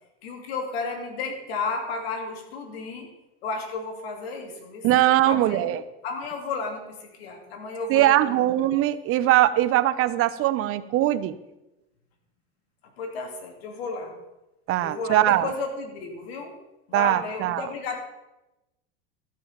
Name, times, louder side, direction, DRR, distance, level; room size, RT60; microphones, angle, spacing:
voice 1, 0.2-3.1 3.4-8.4 13.0-14.1 14.8-16.5 16.9-18.0, left 4 dB, 80° left, 3 dB, 2.9 m, -33 dB
voice 2, 4.8-5.8 7.9-11.4 14.7-15.5 16.9-17.7, right 14 dB, 45° right, 14 dB, 0.8 m, -21 dB
14.0 x 6.4 x 7.4 m, 0.97 s
supercardioid pair, 110°, 30 cm